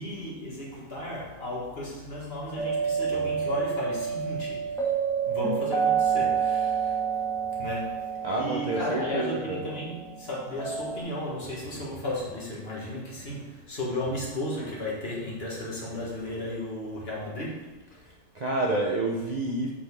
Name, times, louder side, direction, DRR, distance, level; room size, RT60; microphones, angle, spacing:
voice 1, 0.0-4.8 5.2-6.9 7.5-17.8, left 1 dB, 45° left, -5 dB, 2.0 m, -34 dB
sound 1, 2.6-11.0, right 6 dB, 5° left, 1.5 m, -29 dB
voice 2, 8.2-9.6 18.3-19.7, right 2 dB, 40° right, -2 dB, 0.8 m, -28 dB
7.5 x 5.9 x 3.5 m, 1.1 s
omnidirectional pair, 1.4 m